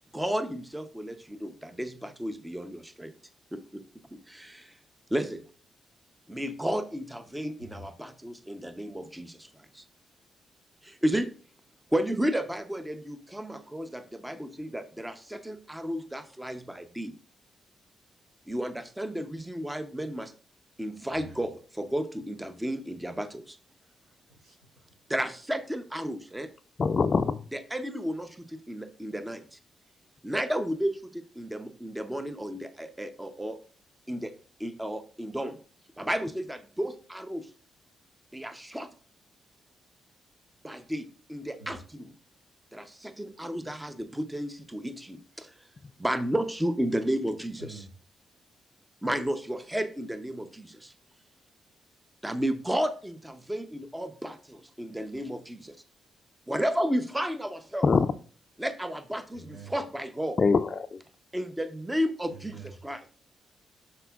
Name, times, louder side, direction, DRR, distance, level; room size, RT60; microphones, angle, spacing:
voice 1, 0.1-3.1 3.5-4.8 5.1-5.4 6.3-9.5 9.7-9.8 10.8-11.3 11.9-17.2 18.5-20.3 20.8-23.6 25.1-26.5 27.5-29.6 30.2-33.6 34.1-34.3 34.6-35.6 36.0-37.5 38.3-38.9 40.6-42.1 42.7-45.5 46.0-47.8 49.0-50.9 52.2-55.8 56.5-57.8 58.6-60.4 61.3-63.0, equal, 10° right, 9 dB, 0.7 m, -33 dB
voice 2, 7.6-7.9 21.0-21.5 23.8-24.9 41.6-41.8 47.6-47.9 59.3-59.7 62.3-62.7, right 2 dB, 80° right, -8 dB, 2.3 m, -47 dB
voice 3, 26.8-27.4 57.8-58.1 60.4-61.0, left 4 dB, 45° left, 5 dB, 0.4 m, -23 dB
12.0 x 4.3 x 2.3 m, 0.41 s
cardioid pair, 65°, 0 cm